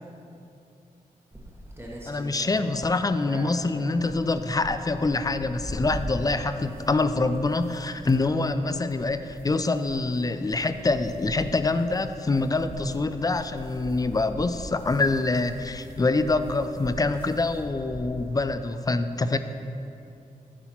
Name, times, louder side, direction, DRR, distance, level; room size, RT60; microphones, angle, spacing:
sound 1, 1.3-18.5, equal, 15° right, 1.2 m, -41 dB
voice 1, 2.1-19.4, left 3 dB, 25° left, 10 dB, 0.4 m, -25 dB
11.0 x 4.1 x 4.4 m, 2.7 s
cardioid pair, 60°, 15 cm